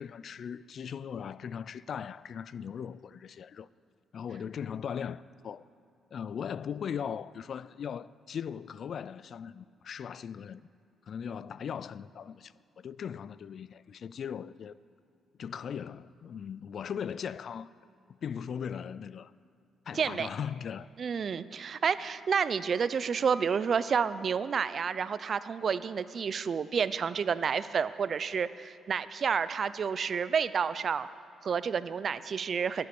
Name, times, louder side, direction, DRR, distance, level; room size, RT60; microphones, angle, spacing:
voice 1, 0.0-3.7 4.1-5.6 6.1-10.6 11.1-14.7 15.4-17.7 18.2-19.3 19.9-20.9, left 7 dB, 55° left, 0.3 m, -39 dB
voice 2, 19.9-20.3 21.0-31.1 31.4-32.9, right 6 dB, 50° right, 0.5 m, -30 dB
20.5 x 8.5 x 6.2 m
cardioid pair, 90°, 0 cm